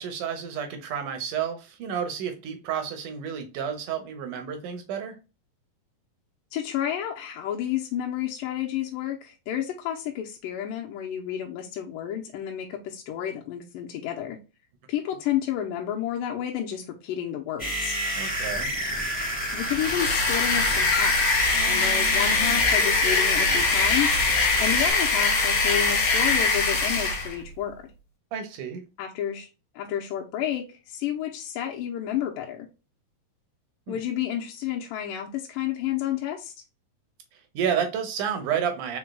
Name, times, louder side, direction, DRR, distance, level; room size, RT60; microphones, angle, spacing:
voice 1, 0.0-5.2 18.2-18.7 28.3-28.8 33.9-34.0 37.3-39.0, right 8 dB, 75° right, 2.1 m, -30 dB
voice 2, 6.5-14.4 14.9-18.0 19.5-21.3 21.7-27.9 29.0-29.5 29.8-32.7 33.9-36.5, left 10 dB, 80° left, 2.3 m, -31 dB
sound 1, 17.6-24.9, equal, 5° left, 1.6 m, -30 dB
sound 2, 19.6-27.4, left 3 dB, 60° left, 1.3 m, -23 dB
5.0 x 4.6 x 2.2 m
omnidirectional pair, 4.0 m